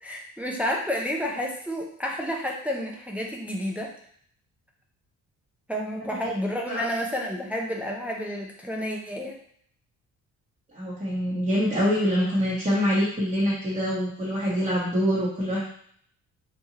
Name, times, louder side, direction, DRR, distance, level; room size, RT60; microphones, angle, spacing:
voice 1, 0.0-3.9 5.7-9.4, equal, 5° right, -1 dB, 0.4 m, -30 dB
voice 2, 10.7-15.6, equal, 25° right, -8 dB, 0.9 m, -25 dB
2.8 x 2.3 x 2.8 m, 0.62 s
cardioid pair, 90°, 30 cm